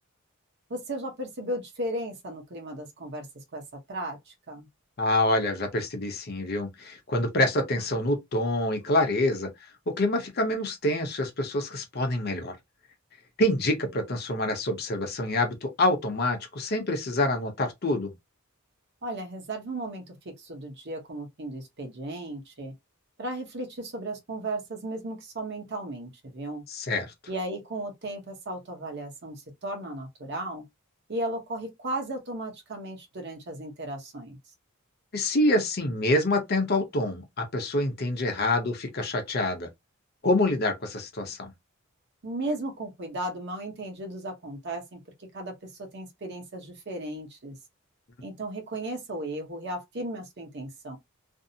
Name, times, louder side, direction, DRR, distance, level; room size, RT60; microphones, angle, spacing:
voice 1, 0.7-3.3 3.5-3.6 3.9-4.7 19.0-22.7 23.2-26.6 27.3-30.6 31.1-34.4 42.2-47.6 48.2-51.0, right 1 dB, 55° right, 0.9 m, -35 dB
voice 2, 5.0-9.5 9.9-12.6 13.4-18.1 26.7-27.1 35.1-39.7 40.2-41.5, left 1 dB, 50° left, 0.7 m, -26 dB
2.6 x 2.0 x 2.6 m
head